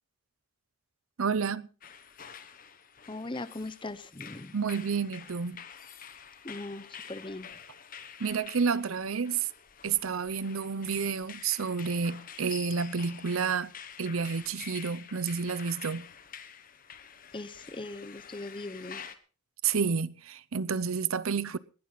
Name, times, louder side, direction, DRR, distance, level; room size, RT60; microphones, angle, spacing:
voice 1, 1.2-1.7 4.5-5.6 8.2-9.5 9.8-13.7 14.0-16.1 19.6-21.6, right 5 dB, 85° right, 0.7 m, -30 dB
sound 1, 1.8-19.1, left 7 dB, 40° left, 1.2 m, -48 dB
voice 2, 3.1-4.5 6.4-7.5 17.3-19.0, left 2 dB, 25° left, 0.8 m, -40 dB
20.0 x 12.0 x 4.0 m
head